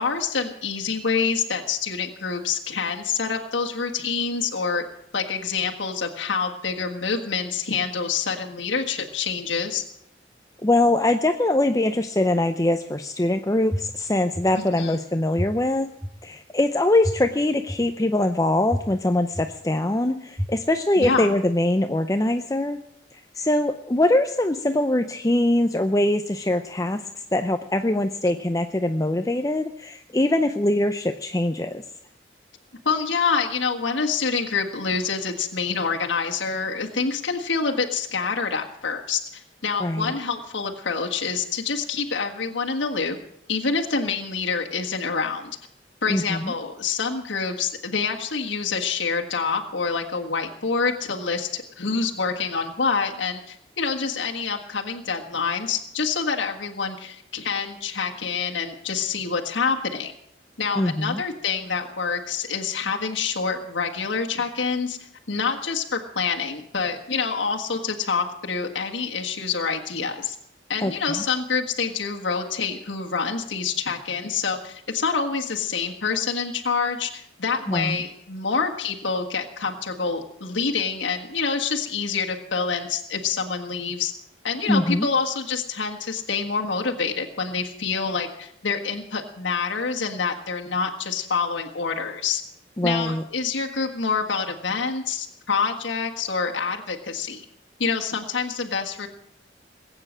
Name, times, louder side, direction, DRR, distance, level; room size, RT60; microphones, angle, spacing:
voice 1, 0.0-4.8 5.1-9.8 14.5-14.9 21.0-21.4 32.8-43.2 43.5-45.5 46.0-60.1 60.6-65.0 65.3-70.4 70.7-84.1 84.4-92.4 92.8-97.4 97.8-99.1, left 5 dB, 90° left, 1 dB, 1.6 m, -27 dB
voice 2, 10.6-15.9 16.2-22.8 23.1-27.0 27.3-31.8 39.8-40.1 46.1-46.5 60.8-61.2 70.8-71.2 77.7-78.0 84.6-85.1 92.8-93.2, left 1 dB, 20° left, 7 dB, 0.6 m, -23 dB
sound 1, 13.7-13.8 14.3-14.4 15.4-15.5 16.0-16.1 17.0-17.1 17.7-17.8 18.7-18.8 19.3-19.4 20.4-20.5 21.0-21.1, equal, 15° right, 1.8 m, -26 dB
21.0 x 9.0 x 7.4 m, 0.72 s
head